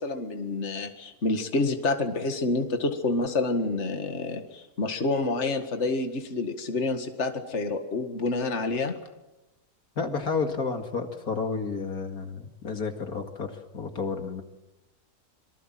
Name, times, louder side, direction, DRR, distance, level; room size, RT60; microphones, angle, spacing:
voice 1, 0.0-8.9, left 3 dB, 50° left, 6 dB, 2.2 m, -28 dB
voice 2, 10.0-14.4, left 4 dB, 70° left, 5 dB, 2.7 m, -31 dB
27.0 x 23.5 x 7.6 m, 0.98 s
omnidirectional pair, 1.6 m